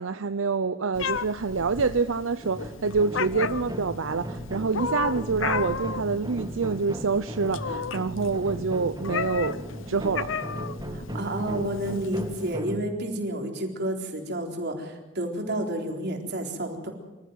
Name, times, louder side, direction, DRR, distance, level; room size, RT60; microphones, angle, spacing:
voice 1, 0.0-10.3, right 4 dB, 85° right, 0.7 m, -27 dB
Meow, 1.0-12.5, left 6 dB, 75° left, 0.8 m, -35 dB
sound 1, 2.4-12.8, equal, 20° right, 2.0 m, -37 dB
voice 2, 10.9-16.9, right 1 dB, 60° right, 4.1 m, -30 dB
26.0 x 14.0 x 9.2 m
head